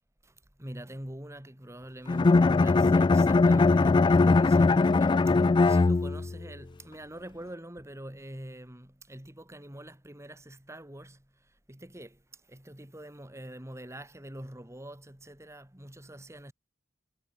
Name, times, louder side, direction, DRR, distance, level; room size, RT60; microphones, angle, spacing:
voice 1, 0.2-16.5, right 1 dB, 15° right, 2.5 m, -45 dB
Bowed string instrument, 2.1-6.4, left 3 dB, 25° left, 0.3 m, -21 dB
head